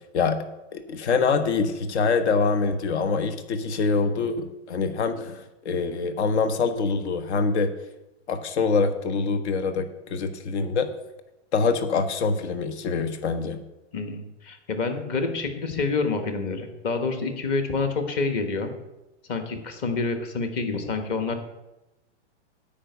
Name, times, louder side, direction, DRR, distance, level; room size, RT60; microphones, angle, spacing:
voice 1, 0.7-7.7 8.3-10.9 11.5-13.6, left 4 dB, 70° left, 9 dB, 1.2 m, -25 dB
voice 2, 13.9-18.7 19.3-21.4, left 4 dB, 30° left, 6 dB, 1.3 m, -28 dB
10.0 x 5.2 x 8.1 m, 0.97 s
hypercardioid pair, 155°, 35 cm